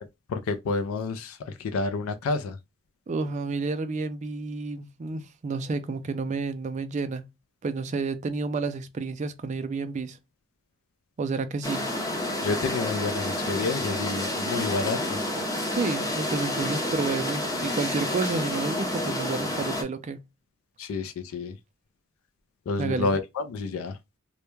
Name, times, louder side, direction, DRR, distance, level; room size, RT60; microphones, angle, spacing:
voice 1, 0.3-2.6 12.4-15.2 20.8-21.6 22.7-24.0, left 3 dB, 85° left, 0.3 m, -29 dB
voice 2, 3.1-7.2 7.6-10.2 11.2-11.9 15.7-20.2 22.8-23.1, right 4 dB, 35° right, 0.3 m, -30 dB
sound 1, 11.6-19.8, left 1 dB, 15° left, 0.6 m, -29 dB
2.2 x 2.1 x 3.0 m
head